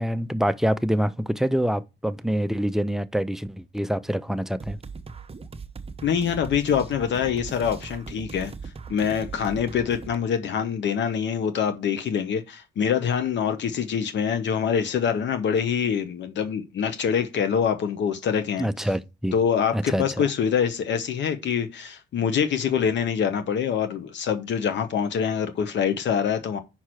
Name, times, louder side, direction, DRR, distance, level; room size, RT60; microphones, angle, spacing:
voice 1, 0.0-4.8 18.6-19.3 19.7-20.0, equal, ahead, 0.6 m, -25 dB
sound 1, 4.6-10.2, right 5 dB, 30° right, 0.9 m, -39 dB
voice 2, 6.0-8.5 8.9-18.7 19.3-26.6, left 7 dB, 65° left, 1.0 m, -25 dB
5.8 x 4.4 x 6.3 m
cardioid pair, 90°, 20 cm